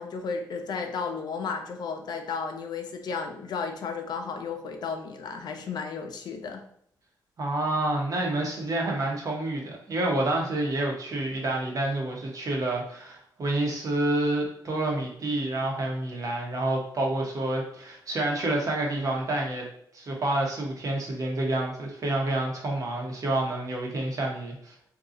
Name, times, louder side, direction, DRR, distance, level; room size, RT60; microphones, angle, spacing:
voice 1, 0.0-6.6, left 5 dB, 70° left, 5 dB, 0.5 m, -33 dB
voice 2, 7.4-19.7 19.9-24.7, right 2 dB, 50° right, -1 dB, 1.0 m, -28 dB
2.7 x 2.3 x 3.8 m, 0.67 s
cardioid pair, 85°, 7 cm